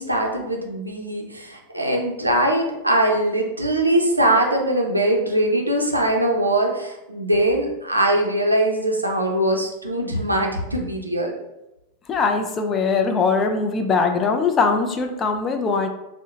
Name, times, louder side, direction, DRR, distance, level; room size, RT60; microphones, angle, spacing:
voice 1, 0.0-11.4, right 1 dB, 85° right, 1 dB, 0.4 m, -21 dB
voice 2, 12.1-15.9, left 4 dB, 25° left, 5 dB, 0.3 m, -21 dB
2.7 x 2.0 x 2.7 m, 0.93 s
figure-of-eight pair, 90°, 0 cm